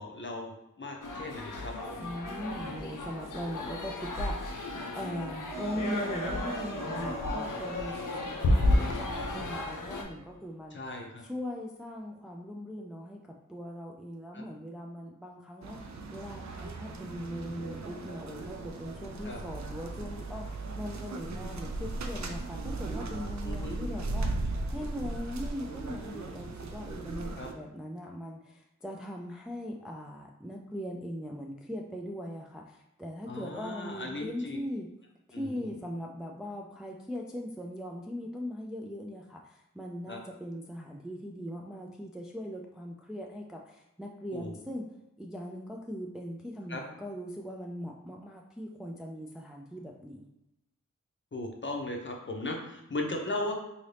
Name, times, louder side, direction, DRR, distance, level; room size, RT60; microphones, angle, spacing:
voice 1, 0.0-2.1 10.7-11.2 14.3-14.4 19.3-19.4 23.4-23.8 27.4-27.5 33.3-34.6 35.3-35.7 40.1-40.2 44.3-44.5 46.7-46.8 51.3-53.5, left 2 dB, 35° left, 1 dB, 0.7 m, -37 dB
sound 1, 1.0-10.0, left 1 dB, 75° left, 0.5 m, -32 dB
voice 2, 2.0-4.5 4.9-10.9 11.2-34.9 35.3-44.9 45.2-50.3, equal, ahead, 0 dB, 0.3 m, -40 dB
sound 2, 5.5-10.3, right 1 dB, 85° right, 1.0 m, -41 dB
sound 3, 15.6-27.5, right 2 dB, 60° right, 0.5 m, -37 dB
2.8 x 2.7 x 3.3 m, 0.87 s
wide cardioid pair, 45°, 31 cm